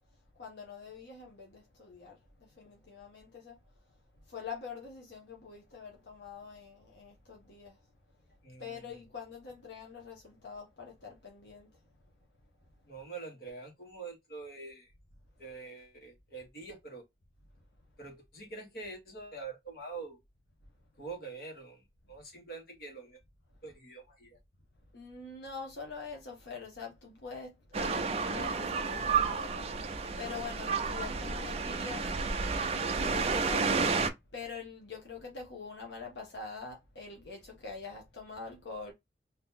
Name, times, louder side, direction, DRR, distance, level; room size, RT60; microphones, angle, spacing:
voice 1, 0.4-3.6 4.2-7.8 8.6-11.8 24.9-32.1 32.9-34.1 34.3-38.9, left 5 dB, 80° left, 0.9 m, -45 dB
voice 2, 8.4-8.8 12.9-14.9 15.4-17.0 18.0-20.2 21.0-23.2 23.6-24.4, right 4 dB, 55° left, 1.4 m, -45 dB
sound 1, 27.7-34.1, right 5 dB, 35° right, 0.4 m, -31 dB
2.8 x 2.7 x 3.5 m
head